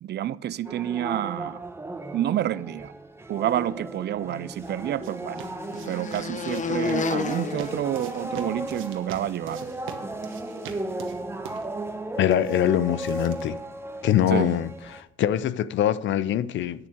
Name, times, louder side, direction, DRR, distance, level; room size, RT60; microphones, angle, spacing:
voice 1, 0.0-1.6 2.1-2.9 3.3-5.4 5.9-9.7 14.3-14.5, right 11 dB, 60° right, 0.5 m, -29 dB
sound 1, 0.6-15.0, right 2 dB, 10° right, 1.0 m, -36 dB
sound 2, 4.1-8.8, left 4 dB, 40° left, 0.9 m, -32 dB
sound 3, 4.3-14.3, right 8 dB, 90° right, 1.2 m, -45 dB
voice 2, 12.2-13.6 14.0-16.9, left 11 dB, 70° left, 0.6 m, -23 dB
10.0 x 7.2 x 6.5 m
cardioid pair, 90°, 20 cm